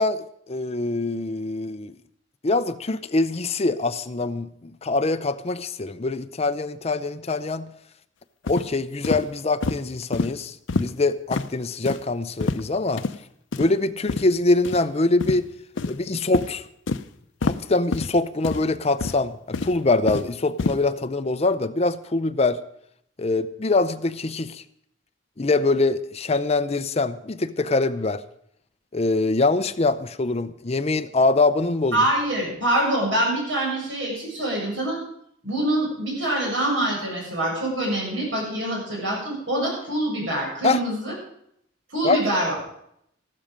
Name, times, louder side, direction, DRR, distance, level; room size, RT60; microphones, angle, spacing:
voice 1, 0.0-1.9 2.4-7.7 8.5-13.0 13.6-15.5 15.9-16.6 17.4-22.6 23.2-24.6 25.4-28.2 28.9-32.0 40.6-40.8 42.0-42.2, left 3 dB, 35° left, 11 dB, 0.6 m, -24 dB
sound 1, 8.5-8.7 9.0-9.2 9.6-9.8 10.1-10.3 10.7-10.9 11.3-11.5 11.9-12.0 12.4-12.6 13.0-13.1 13.5-13.7 14.1-14.2 14.6-14.8 15.2-15.4 15.8-16.0 16.3-16.5 16.9-17.0 17.4-17.6 17.9-18.1 18.4-18.6 19.0-19.2 19.5-20.3 20.6-20.8, left 3 dB, 75° left, 0.6 m, -26 dB
voice 2, 31.9-35.0 35.4-41.1 41.9-42.5, right 1 dB, 75° right, -3 dB, 7.4 m, -25 dB
14.0 x 13.0 x 5.2 m, 0.72 s
head